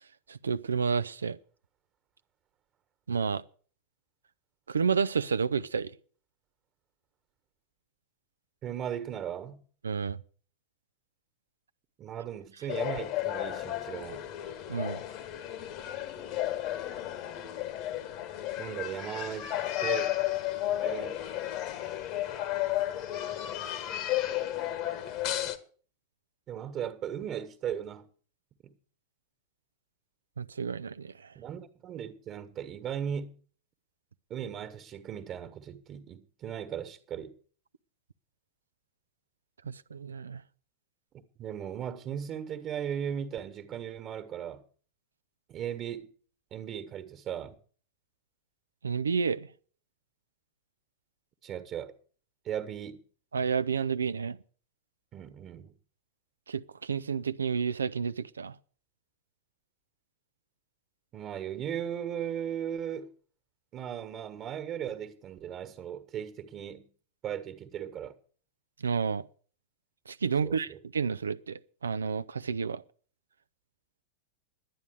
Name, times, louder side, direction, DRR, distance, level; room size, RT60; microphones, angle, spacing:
voice 1, 0.3-1.4 3.1-3.4 4.7-5.9 9.8-10.2 14.7-15.0 30.4-31.3 39.7-40.4 48.8-49.5 53.3-54.4 56.5-58.6 68.8-69.2 70.1-72.8, right 6 dB, 70° right, 0.5 m, -30 dB
voice 2, 8.6-9.6 12.0-14.3 18.6-19.5 19.8-20.1 20.8-21.2 26.5-28.1 28.6-28.7 31.3-33.3 34.3-37.3 41.4-44.6 45.5-46.1 46.5-47.6 51.4-51.9 52.4-53.0 55.1-55.7 61.1-63.1 63.7-66.9 67.2-68.1 70.4-70.8, right 9 dB, 30° right, 1.6 m, -37 dB
sound 1, 12.7-25.6, left 13 dB, 40° left, 1.2 m, -33 dB
11.5 x 9.6 x 6.5 m
figure-of-eight pair, 90°, 0 cm